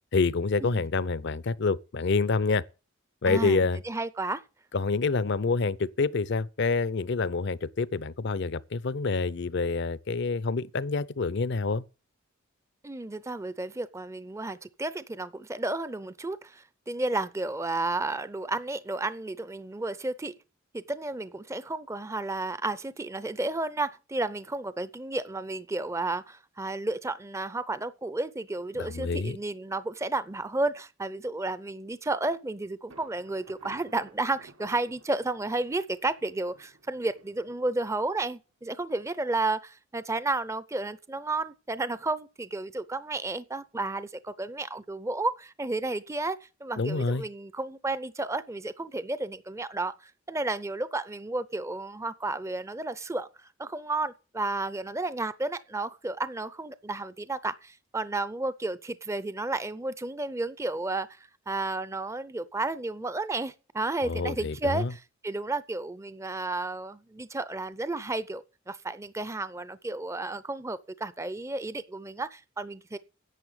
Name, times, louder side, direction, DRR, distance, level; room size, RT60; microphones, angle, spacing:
voice 1, 0.1-2.6 3.2-3.8 4.7-11.8 28.7-29.4 46.8-47.2 64.0-64.9, left 4 dB, 60° left, 0.6 m, -27 dB
voice 2, 3.3-3.6 3.8-4.4 12.8-20.3 20.7-53.3 53.6-73.0, right 2 dB, 15° right, 0.5 m, -32 dB
Thunder, 32.9-38.6, right 3 dB, 80° right, 1.4 m, -56 dB
11.0 x 7.7 x 8.1 m
head